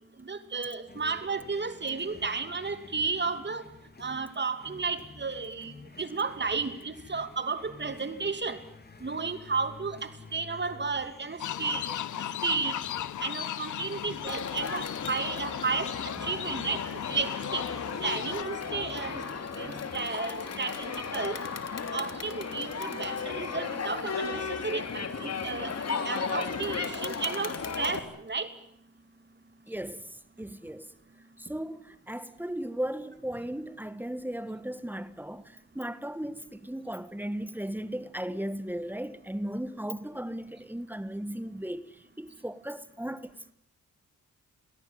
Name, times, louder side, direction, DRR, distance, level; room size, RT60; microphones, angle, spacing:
voice 1, 0.3-3.6 4.0-5.7 6.0-8.6 9.0-12.0 12.4-12.7 13.2-15.9 16.2-16.8 17.1-17.6 18.0-19.2 19.6-21.4 21.9-25.7 26.0-28.5, right 4 dB, 35° right, 2.8 m, -33 dB
sound 1, 0.9-19.8, left 3 dB, 30° left, 3.7 m, -51 dB
sound 2, 11.4-18.4, left 11 dB, 75° left, 0.9 m, -37 dB
Crowd, 14.3-28.0, left 5 dB, 55° left, 3.3 m, -35 dB
voice 2, 29.7-30.9 31.4-43.5, right 1 dB, 5° right, 1.6 m, -36 dB
28.0 x 17.5 x 9.3 m
cardioid pair, 70°, 31 cm